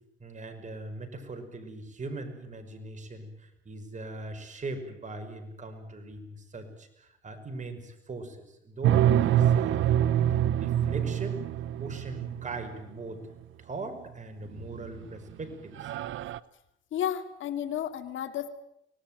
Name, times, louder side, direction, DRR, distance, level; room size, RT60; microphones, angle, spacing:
voice 1, 0.2-10.2 10.6-11.4 11.8-13.2 13.6-15.9, right 2 dB, 35° right, 6 dB, 5.7 m, -40 dB
sound 1, 8.8-12.7 14.6-15.0 15.4-15.5 15.8-16.4, right 11 dB, 75° right, 0.8 m, -25 dB
voice 2, 16.9-18.5, left 10 dB, 75° left, 9 dB, 2.5 m, -32 dB
24.5 x 19.0 x 9.1 m, 0.80 s
cardioid pair, 90°, 20 cm